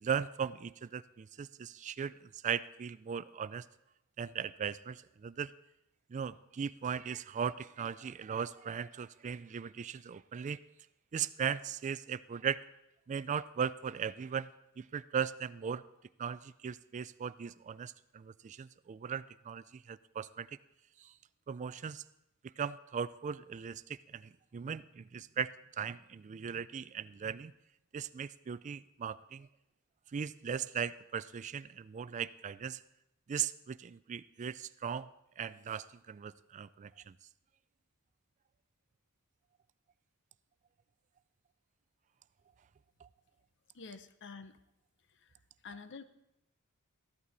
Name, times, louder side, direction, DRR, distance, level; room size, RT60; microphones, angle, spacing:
voice 1, 0.0-3.7 4.2-5.5 6.1-10.6 11.1-12.6 13.1-14.5 14.8-15.8 16.2-20.5 21.0-21.1 21.5-22.0 22.6-27.5 27.9-29.5 30.1-32.8 33.3-35.1 35.4-37.1 43.0-43.1, right 7 dB, 35° right, 16 dB, 0.3 m, -38 dB
voice 2, 43.7-44.6 45.6-46.0, left 4 dB, 55° left, 10 dB, 0.7 m, -47 dB
14.5 x 11.5 x 4.0 m, 0.85 s
head